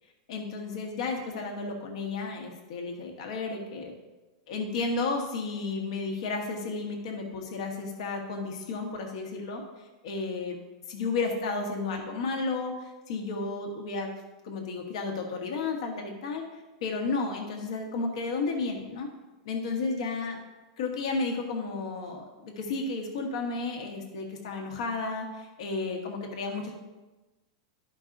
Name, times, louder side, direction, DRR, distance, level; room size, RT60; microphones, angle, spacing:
voice 1, 0.3-3.9 4.5-10.6 10.9-14.1 14.4-19.1 19.4-20.4 20.8-26.7, left 3 dB, 65° left, 2 dB, 1.3 m, -33 dB
12.0 x 5.3 x 2.6 m, 1.1 s
supercardioid pair, 165°, 3 cm